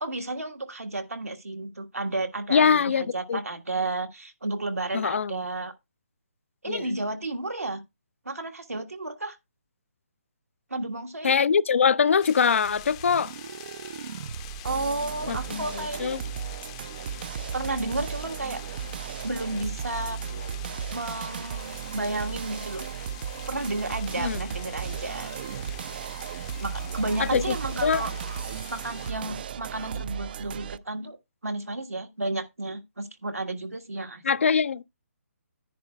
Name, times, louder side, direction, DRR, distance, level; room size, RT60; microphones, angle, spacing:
voice 1, 0.0-5.7 6.6-7.8 8.2-9.4 10.7-11.4 14.6-16.2 17.5-18.6 19.2-20.2 20.9-22.9 23.5-25.3 26.6-28.1 28.7-31.2 31.4-34.2, right 2 dB, 90° right, 1.5 m, -32 dB
voice 2, 2.5-3.4 4.9-5.4 6.7-6.8 11.2-13.3 15.3-15.7 16.0-16.2 24.2-24.4 27.2-27.6 27.8-28.0 34.2-34.8, left 6 dB, 60° left, 0.5 m, -23 dB
sound 1, 12.2-29.1, left 14 dB, 25° left, 0.6 m, -46 dB
sound 2, 12.6-30.8, right 8 dB, 40° right, 0.4 m, -35 dB
10.5 x 10.0 x 2.3 m
figure-of-eight pair, 145°, 8 cm